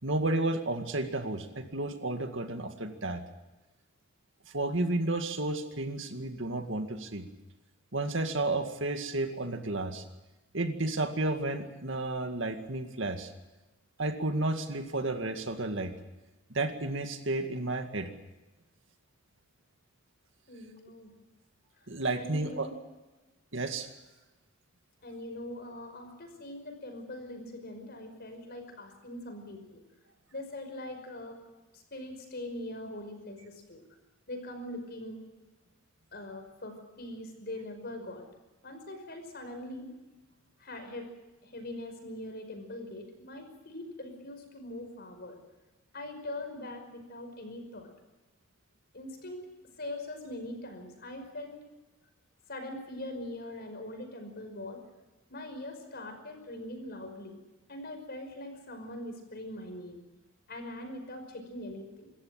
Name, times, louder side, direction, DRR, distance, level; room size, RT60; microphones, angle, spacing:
voice 1, 0.0-3.2 4.5-7.3 7.9-10.0 10.5-13.3 14.0-15.9 16.5-18.1 21.9-22.7 23.5-23.9, right 2 dB, 60° right, 6 dB, 2.1 m, -32 dB
voice 2, 20.5-21.1 22.1-22.8 25.0-29.8 30.3-31.4 31.7-33.8 34.3-35.2 36.1-38.3 38.6-39.9 40.6-41.1 41.4-45.4 45.9-47.9 48.9-49.4 49.8-51.6 52.5-54.8 55.3-57.4 57.7-60.0 60.5-62.1, left 1 dB, 50° left, 5 dB, 5.4 m, -42 dB
26.0 x 14.0 x 8.9 m, 1.1 s
head